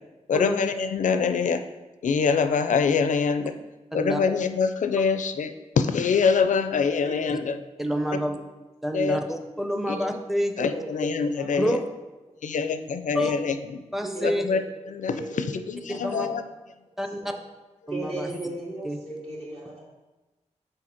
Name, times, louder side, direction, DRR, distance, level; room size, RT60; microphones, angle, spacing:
voice 1, 0.3-1.6 2.0-3.5 3.9-7.6 8.9-9.2 9.9-10.0 10.6-11.8 12.4-13.5 14.2-14.6 14.9-15.1 15.7-16.4, left 5 dB, 80° left, 9 dB, 0.4 m, -24 dB
voice 2, 7.8-8.4 8.8-10.8 11.5-11.8 13.1-13.3 13.9-14.5 15.9-16.3 17.0-17.3 17.9-18.3 18.8-19.0, equal, 5° right, 5 dB, 0.6 m, -28 dB
voice 3, 10.6-11.6 14.0-14.9 15.1-16.4 17.2-17.3 17.9-19.9, right 1 dB, 55° right, -5 dB, 2.1 m, -37 dB
6.4 x 3.8 x 4.4 m, 1.1 s
wide cardioid pair, 95°, 13 cm